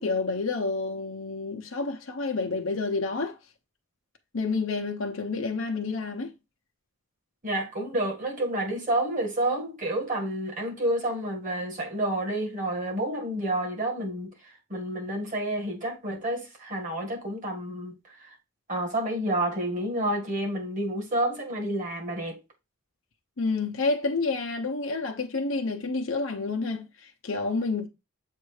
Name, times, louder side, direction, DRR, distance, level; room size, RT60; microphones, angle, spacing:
voice 1, 0.0-3.4 4.3-6.3 23.4-27.9, left 3 dB, 65° left, 0.8 m, -29 dB
voice 2, 7.4-14.3 14.7-17.9 18.7-22.4, right 1 dB, 35° right, 1.9 m, -29 dB
7.4 x 2.6 x 4.9 m
head